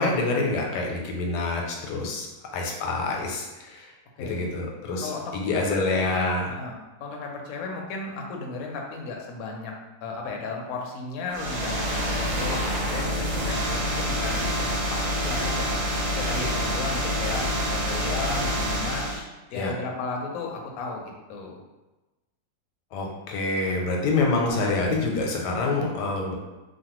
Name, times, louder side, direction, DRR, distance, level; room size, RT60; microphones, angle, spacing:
voice 1, 0.0-3.9 4.2-6.5 19.5-19.7 22.9-26.4, left 3 dB, 90° left, 0 dB, 1.2 m, -26 dB
voice 2, 4.2-4.5 5.0-5.4 5.7-6.2 6.6-6.7 7.0-9.7 10.0-19.2 19.5-21.6, left 3 dB, 70° left, 1 dB, 0.9 m, -35 dB
sound 1, 11.3-19.2, equal, 80° right, 1.3 m, -27 dB
3.1 x 2.2 x 2.9 m, 1.1 s
omnidirectional pair, 1.7 m